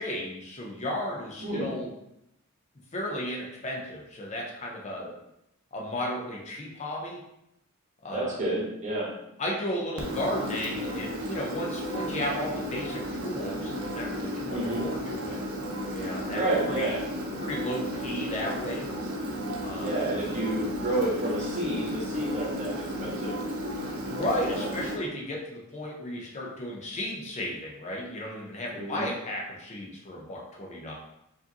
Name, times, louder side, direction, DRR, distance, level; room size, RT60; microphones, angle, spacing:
voice 1, 0.0-1.9 2.9-5.0 5.7-7.2 8.0-8.4 9.4-15.4 15.9-16.4 16.7-17.0 17.4-18.9 19.6-20.1 24.1-30.9, left 1 dB, 30° left, -1 dB, 0.6 m, -34 dB
voice 2, 8.1-9.1 14.5-14.9 16.3-17.0 19.8-23.3 24.5-24.7 28.7-29.1, right 1 dB, 35° right, -5 dB, 1.2 m, -30 dB
Engine, 10.0-25.0, equal, 70° right, 0.6 m, -34 dB
4.6 x 2.6 x 2.8 m, 0.83 s
head